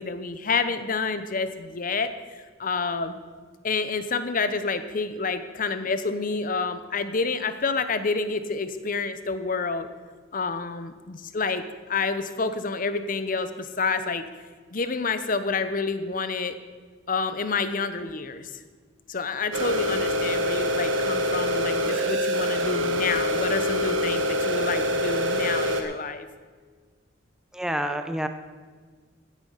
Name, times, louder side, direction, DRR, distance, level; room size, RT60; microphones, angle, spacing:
voice 1, 0.0-2.1 2.6-3.1 3.6-9.9 10.3-14.3 14.7-16.5 17.1-18.5 19.1-26.3, left 4 dB, 45° left, 11 dB, 0.8 m, -28 dB
sound 1, 19.5-25.8, equal, 80° right, 1.6 m, -25 dB
voice 2, 27.5-28.3, equal, 5° right, 8 dB, 0.7 m, -28 dB
16.0 x 8.3 x 5.6 m, 1.5 s
head